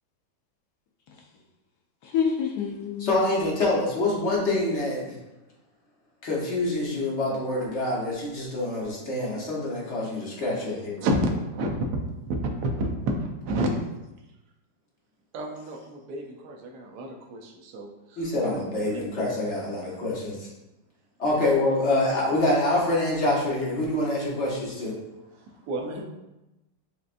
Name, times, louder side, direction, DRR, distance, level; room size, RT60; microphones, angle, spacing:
voice 1, 2.0-3.2 26.0-26.1, left 7 dB, 70° left, 0 dB, 1.0 m, -27 dB
voice 2, 3.0-5.1 6.2-11.0 18.2-20.5 21.2-24.9, left 2 dB, 45° left, -4 dB, 1.2 m, -26 dB
voice 3, 11.0-12.4 12.6-13.7 15.3-19.0 21.3-21.6 25.7-26.0, right 1 dB, 70° right, 0 dB, 1.1 m, -30 dB
6.5 x 2.4 x 2.5 m, 0.98 s
omnidirectional pair, 2.0 m